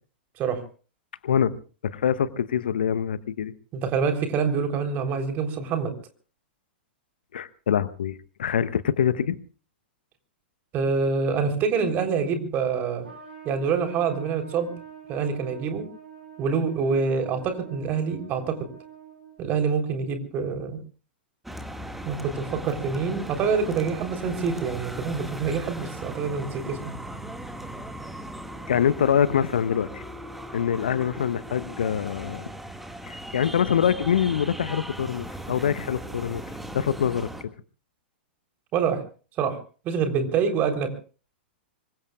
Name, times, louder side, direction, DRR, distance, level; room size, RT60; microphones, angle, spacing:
voice 1, 1.2-1.6 1.8-3.5 7.3-9.4 28.7-30.0 30.5-32.5 33.1-36.4 36.7-37.3, left 8 dB, 65° left, 16 dB, 0.9 m, -24 dB
voice 2, 3.7-5.9 10.7-13.0 13.5-14.7 15.1-15.8 16.4-18.6 19.4-20.8 22.0-26.8 38.7-39.0 39.4-39.6 39.8-40.9, right 5 dB, 30° right, 6 dB, 3.6 m, -26 dB
Trumpet, 13.0-19.6, right 8 dB, 80° right, 7.1 m, -45 dB
sound 1, 21.4-37.4, right 1 dB, 5° right, 1.9 m, -38 dB
25.5 x 23.5 x 2.4 m, 0.37 s
figure-of-eight pair, 100°, 5 cm